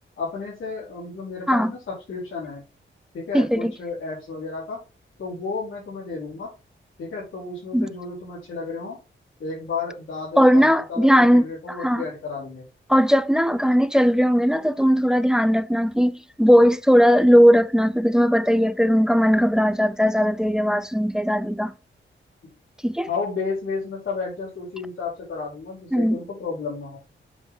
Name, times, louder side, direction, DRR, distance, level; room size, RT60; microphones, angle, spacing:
voice 1, 0.2-2.6 3.1-4.8 5.2-6.5 7.0-9.0 9.4-12.6 23.1-27.0, left 4 dB, 80° left, 4.0 m, -32 dB
voice 2, 3.3-3.7 7.7-7.9 10.4-12.0 12.9-21.7 22.8-23.1 25.9-26.2, equal, 5° right, 0.4 m, -18 dB
7.8 x 4.0 x 3.7 m
wide cardioid pair, 120°, 20 cm